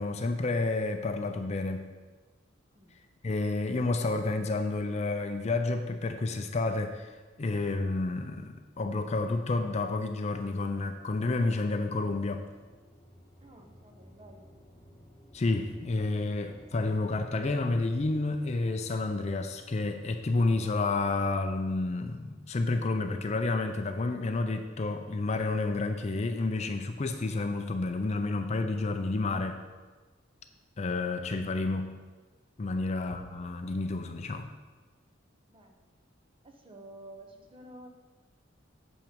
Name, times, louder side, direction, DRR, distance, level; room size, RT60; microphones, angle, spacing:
voice 1, 0.0-1.8 3.2-12.5 15.3-29.6 30.8-31.9 32.6-34.5, left 3 dB, 35° left, 7 dB, 0.4 m, -30 dB
sound 1, 12.3-21.4, equal, 20° left, 1.5 m, -55 dB
voice 2, 13.4-14.5 35.5-35.8 36.4-37.9, right 1 dB, 25° right, 3 dB, 0.9 m, -51 dB
7.3 x 5.7 x 5.2 m, 1.3 s
head